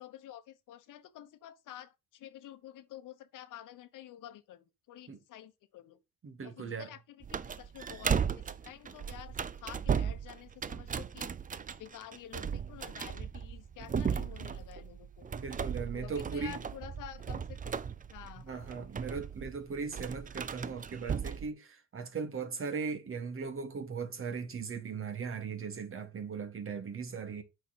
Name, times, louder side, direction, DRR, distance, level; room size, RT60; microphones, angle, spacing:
voice 1, 0.0-6.0 6.4-11.3 11.8-15.3 15.8-17.8 18.1-18.8, left 11 dB, 80° left, 1.1 m, -50 dB
voice 2, 6.2-6.9 15.3-16.6 18.4-27.4, right 5 dB, 45° right, 1.7 m, -38 dB
sound 1, 7.2-21.5, right 7 dB, 25° right, 0.5 m, -36 dB
8.8 x 4.6 x 4.2 m
cardioid pair, 85°, 31 cm